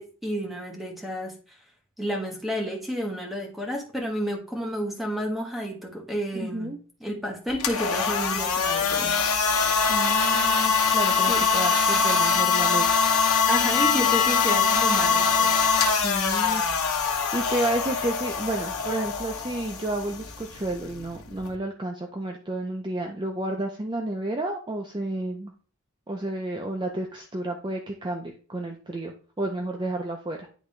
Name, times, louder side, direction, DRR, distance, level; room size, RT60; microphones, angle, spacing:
voice 1, 0.0-1.3 2.0-9.2 11.3-11.5 13.5-15.6, equal, ahead, 0 dB, 1.3 m, -31 dB
voice 2, 6.3-6.8 9.9-13.0 16.0-16.8 17.3-25.5 26.1-30.5, right 1 dB, 20° right, 2 dB, 0.6 m, -31 dB
sound 1, 7.5-21.6, left 5 dB, 85° left, 1.1 m, -23 dB
10.0 x 3.5 x 3.2 m, 0.41 s
head